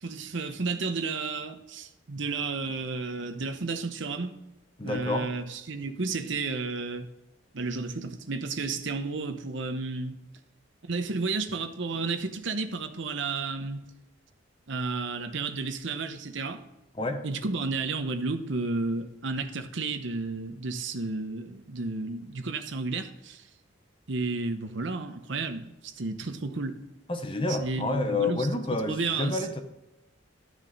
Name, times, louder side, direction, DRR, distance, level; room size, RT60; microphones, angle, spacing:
voice 1, 0.0-4.3 4.8-7.1 7.5-10.2 10.9-13.8 14.7-16.6 17.2-23.5 24.1-26.8 27.5-29.5, right 3 dB, 65° right, 0.9 m, -32 dB
voice 2, 4.8-5.3 17.0-17.3 27.1-29.6, left 2 dB, 25° left, 0.8 m, -29 dB
12.0 x 6.1 x 4.0 m
head